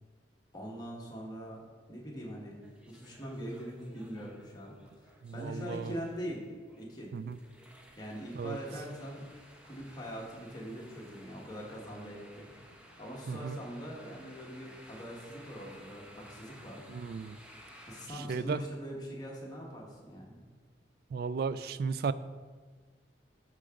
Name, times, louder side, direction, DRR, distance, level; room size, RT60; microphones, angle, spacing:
voice 1, 0.5-1.6 1.9-2.6 2.9-6.5 6.8-7.1 8.0-9.3 9.6-12.5 12.9-16.8 17.9-20.4, equal, 20° left, -3 dB, 1.5 m, -42 dB
sound 1, 2.6-18.1, equal, 5° right, 0.8 m, -56 dB
voice 2, 5.2-5.9 7.1-7.4 8.4-8.6 13.3-13.6 16.9-17.4 18.3-18.6 21.1-22.1, right 5 dB, 55° right, 15 dB, 0.3 m, -34 dB
13.0 x 4.9 x 3.7 m, 1.5 s
head